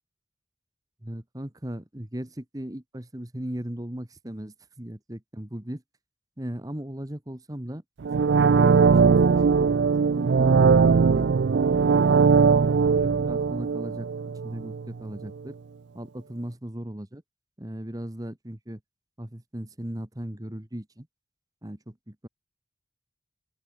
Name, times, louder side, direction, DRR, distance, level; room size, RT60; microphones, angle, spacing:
voice 1, 1.0-5.8 6.4-7.8 8.5-9.7 10.1-11.3 11.8-12.2 12.9-14.1 14.4-15.6 15.9-17.2 17.6-18.8 19.2-21.1 21.6-21.9, equal, 20° right, 1.3 m, -37 dB
sound 1, 8.0-14.9 15.2-15.3, right 5 dB, 85° right, 0.4 m, -20 dB
open air
head